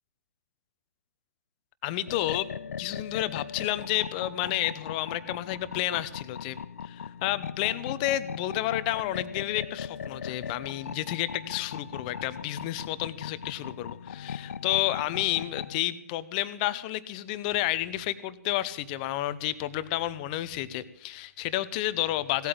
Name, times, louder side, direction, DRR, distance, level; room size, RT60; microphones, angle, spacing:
voice 1, 1.8-2.5 2.8-6.6 6.8-22.5, left 15 dB, 30° left, 15 dB, 0.8 m, -30 dB
sound 1, 2.1-15.8, left 7 dB, 65° left, 0.6 m, -39 dB
17.0 x 8.6 x 8.5 m, 0.77 s
figure-of-eight pair, 135°, 8 cm